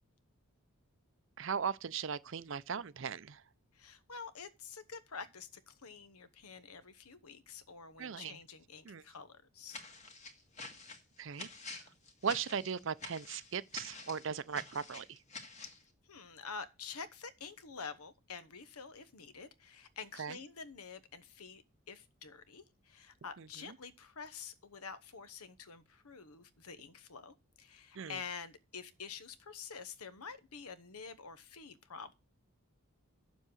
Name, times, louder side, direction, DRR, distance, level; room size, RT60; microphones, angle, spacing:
voice 1, 1.4-3.4 8.0-8.4 8.8-9.0 11.2-11.5 12.2-15.2 20.2-20.4 23.4-23.7 28.0-28.2, right 6 dB, 55° right, 0.5 m, -38 dB
voice 2, 3.7-9.8 16.1-32.1, left 5 dB, 85° left, 1.0 m, -48 dB
sound 1, 9.7-15.8, left 3 dB, 30° left, 1.7 m, -48 dB
7.8 x 7.3 x 6.3 m
head